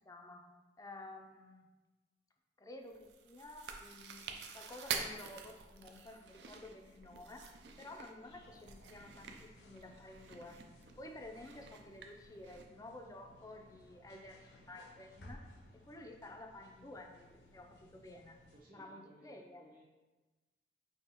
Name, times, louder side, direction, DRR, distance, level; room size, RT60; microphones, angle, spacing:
voice 1, 0.0-0.4 0.8-1.7 2.6-7.5 7.8-10.6 11.0-15.4 15.9-18.4 18.7-19.6, left 2 dB, 20° left, 3 dB, 0.4 m, -52 dB
Chewing mastication, 2.9-12.7, right 6 dB, 70° right, 0.4 m, -47 dB
sound 1, 8.2-18.6, left 1 dB, 75° left, 0.8 m, -60 dB
voice 2, 18.5-19.9, right 1 dB, 50° right, -3 dB, 0.9 m, -60 dB
5.4 x 2.8 x 2.9 m, 1.2 s
head